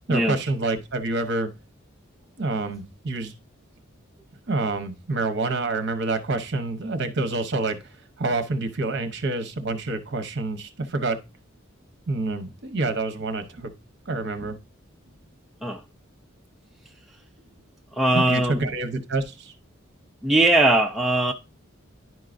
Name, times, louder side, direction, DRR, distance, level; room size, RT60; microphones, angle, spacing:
voice 1, 0.1-1.5 2.4-3.3 4.5-11.2 12.1-13.7 14.1-14.6 18.1-19.5, right 3 dB, 55° right, 0.9 m, -27 dB
voice 2, 17.9-18.7 20.2-21.3, right 1 dB, ahead, 0.4 m, -20 dB
10.5 x 4.6 x 2.5 m
head